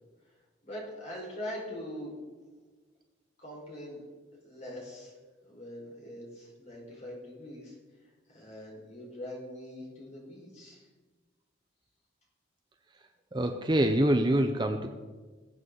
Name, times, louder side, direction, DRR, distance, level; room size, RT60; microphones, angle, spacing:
voice 1, 0.6-2.1 3.4-4.0 4.4-5.1 5.4-7.8 8.3-10.9, left 1 dB, 35° left, -3 dB, 4.6 m, -42 dB
voice 2, 13.3-14.9, right 1 dB, 25° right, 6 dB, 0.6 m, -25 dB
20.0 x 8.1 x 3.9 m, 1.3 s
head